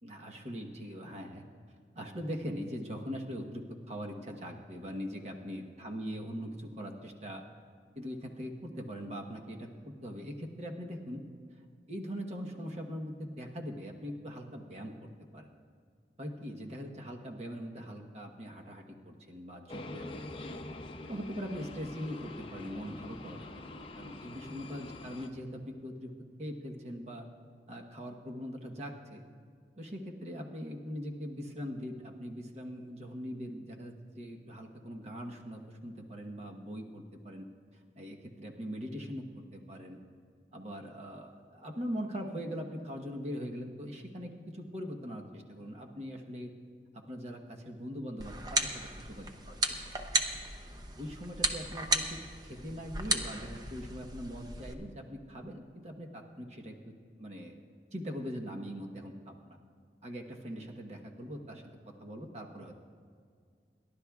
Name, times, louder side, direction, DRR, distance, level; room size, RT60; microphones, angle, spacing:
voice 1, 0.0-1.4 1.9-7.4 7.9-11.2 11.9-15.5 16.2-20.6 21.1-26.1 26.4-27.3 27.7-29.2 29.8-37.5 38.0-39.2 39.5-40.0 40.5-46.5 46.9-49.3 49.7-49.8 50.3-50.4 51.0-52.2 52.4-57.6 57.9-59.6 60.0-61.6 62.0-62.8, equal, 40° right, 2 dB, 1.1 m, -41 dB
sound 1, 19.7-25.3, left 2 dB, 30° left, 0.6 m, -45 dB
sound 2, 48.2-54.7, right 2 dB, 20° right, 0.7 m, -35 dB
28.5 x 11.5 x 2.4 m, 2.1 s
head